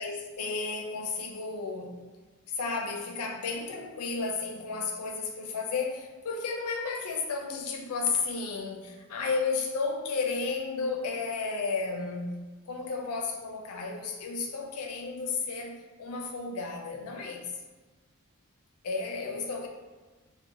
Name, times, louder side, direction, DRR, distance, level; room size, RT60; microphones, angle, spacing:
voice 1, 0.0-2.0 2.5-12.4 12.7-17.5 18.8-19.7, left 4 dB, 85° left, 1 dB, 0.4 m, -33 dB
2.8 x 2.1 x 2.5 m, 1.3 s
head